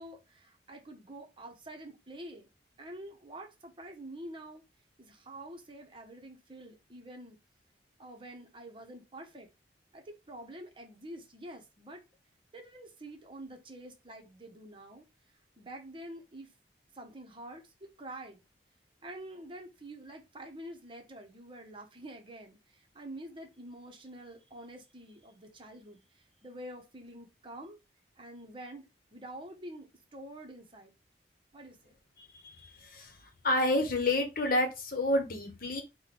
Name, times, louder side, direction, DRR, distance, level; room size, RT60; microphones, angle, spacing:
voice 1, 0.0-2.5 2.8-4.6 5.0-7.4 8.0-9.5 9.9-12.0 12.5-15.1 15.6-16.5 16.9-18.4 19.0-27.8 28.2-30.9 31.5-31.9, right 1 dB, 30° right, 0.8 m, -47 dB
voice 2, 32.2-33.2 33.4-35.8, left 1 dB, 55° left, 0.9 m, -29 dB
4.8 x 2.2 x 4.1 m
head